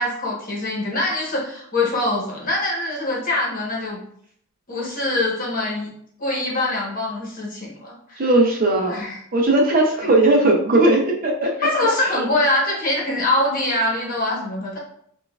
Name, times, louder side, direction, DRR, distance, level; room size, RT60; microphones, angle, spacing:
voice 1, 0.0-4.0 4.7-5.9 6.2-8.3 8.9-9.2 11.6-14.8, left 1 dB, 40° left, -3 dB, 1.0 m, -23 dB
voice 2, 8.2-9.0 9.3-11.6 12.1-12.2, right 2 dB, 40° right, 1 dB, 0.6 m, -18 dB
6.0 x 2.4 x 2.3 m, 0.66 s
head